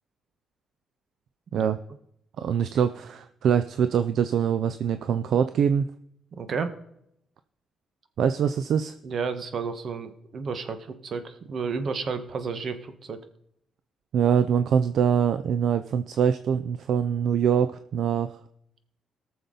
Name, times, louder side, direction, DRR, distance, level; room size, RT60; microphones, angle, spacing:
voice 1, 2.4-5.8 8.2-8.9 14.1-18.3, right 7 dB, 70° right, 11 dB, 0.5 m, -24 dB
voice 2, 6.3-6.7 9.0-13.2, right 5 dB, 55° right, 10 dB, 1.3 m, -32 dB
18.0 x 6.9 x 3.9 m, 0.76 s
cardioid pair, 90°, 0 cm